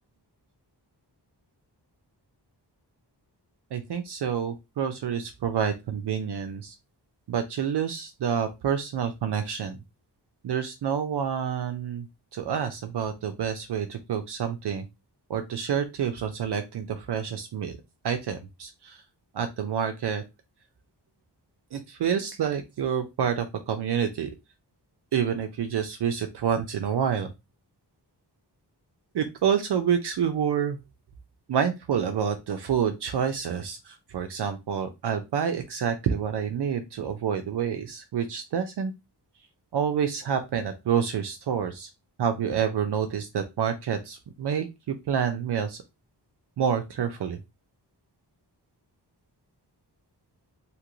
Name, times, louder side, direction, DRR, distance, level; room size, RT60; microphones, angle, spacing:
voice 1, 3.7-6.7 7.3-9.8 10.4-12.0 12.3-14.8 15.3-17.8 18.0-19.0 19.3-20.2 21.7-24.3 25.1-27.3 29.1-30.8 31.5-38.9 39.7-41.9 42.2-45.8 46.6-47.4, right 8 dB, 70° right, 6 dB, 0.5 m, -28 dB
2.8 x 2.5 x 3.0 m, 0.23 s
wide cardioid pair, 145°, 43 cm